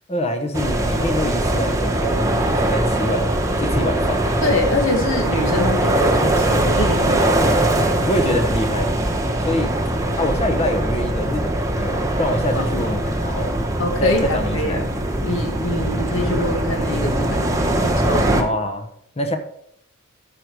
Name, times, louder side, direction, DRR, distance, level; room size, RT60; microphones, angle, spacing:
voice 1, 0.1-4.2 7.1-7.7 8.1-8.9 9.4-9.8 10.2-14.9 18.4-18.9 19.2-19.4, left 1 dB, 30° left, 6 dB, 1.0 m, -25 dB
sound 1, 0.5-18.4, right 1 dB, 15° right, 1.1 m, -21 dB
voice 2, 4.4-7.2 12.6-12.7 13.8-18.4, left 2 dB, 70° left, 4 dB, 1.8 m, -25 dB
13.0 x 5.2 x 4.7 m, 0.72 s
head